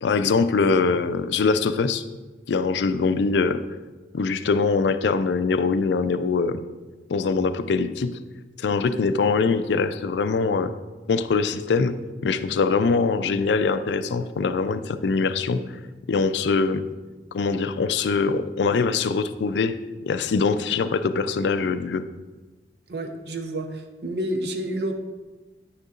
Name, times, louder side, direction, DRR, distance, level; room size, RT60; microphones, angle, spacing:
voice 1, 0.0-2.0 2.5-3.6 4.1-6.6 7.1-8.2 8.6-10.7 11.1-15.7 16.1-16.9 17.3-19.8 20.1-22.1, left 4 dB, 75° left, 11 dB, 0.4 m, -23 dB
voice 2, 22.9-24.9, right 1 dB, 65° right, 5 dB, 0.7 m, -29 dB
9.5 x 6.6 x 2.5 m, 1.2 s
head